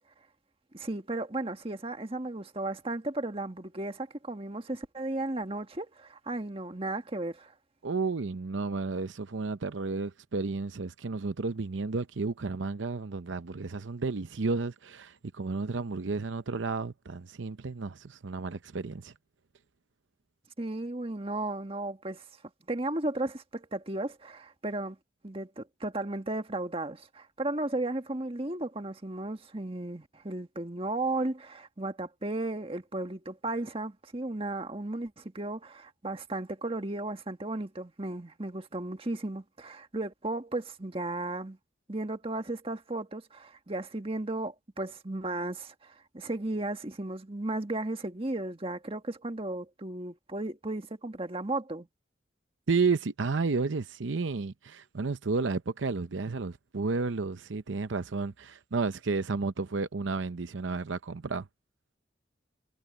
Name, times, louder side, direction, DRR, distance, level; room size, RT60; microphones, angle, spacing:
voice 1, 0.7-7.5 20.6-22.2 22.7-25.0 25.2-41.6 41.9-51.9, right 2 dB, 30° right, 1.7 m, -35 dB
voice 2, 7.8-19.1 52.7-61.5, right 4 dB, 85° right, 0.7 m, -32 dB
head